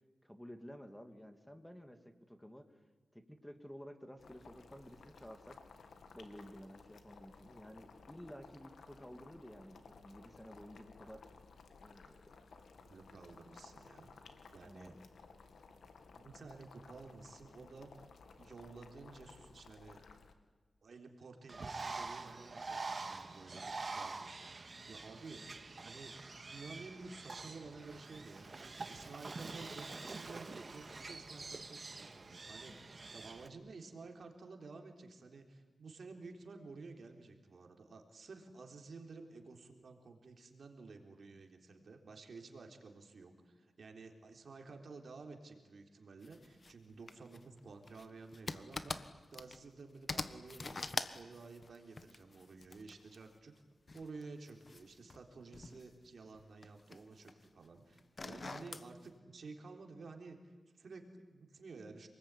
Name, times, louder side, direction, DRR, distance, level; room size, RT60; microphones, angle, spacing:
voice 1, 0.2-2.8 3.1-5.6 6.1-11.2 11.8-12.2 14.6-15.1 32.7-32.9, equal, 5° left, 7 dB, 2.3 m, -53 dB
Boiling, 4.2-20.3, left 4 dB, 85° left, 2.5 m, -58 dB
voice 2, 12.5-14.1 14.5-15.0 16.1-18.1 18.4-20.0 20.8-28.5 28.9-32.7 33.1-48.9 49.3-53.5 53.9-62.1, right 4 dB, 65° right, 4 dB, 3.7 m, -52 dB
Bird, 21.5-33.5, right 3 dB, 40° right, 2.0 m, -46 dB
sound 1, 46.2-46.7 47.1-49.8 50.1-53.2 53.9-56.0 56.3-57.5 58.0-58.9, left 3 dB, 40° left, 1.4 m, -44 dB
28.5 x 20.5 x 9.9 m, 1.4 s
wide cardioid pair, 95°, 0 cm